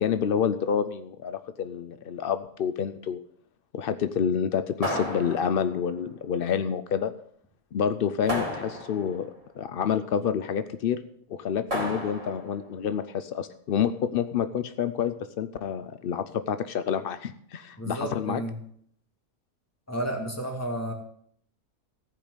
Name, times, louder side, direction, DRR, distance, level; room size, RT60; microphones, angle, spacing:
voice 1, 0.0-3.2 3.7-7.1 7.7-11.0 11.3-18.4, left 8 dB, 85° left, 12 dB, 0.5 m, -28 dB
sound 1, 4.8-5.9 8.3-9.3 11.7-12.6, equal, 40° right, 3.0 m, -32 dB
voice 2, 17.8-18.6 19.9-20.9, right 1 dB, 10° left, 1 dB, 2.1 m, -32 dB
15.0 x 5.2 x 8.0 m, 0.64 s
omnidirectional pair, 1.6 m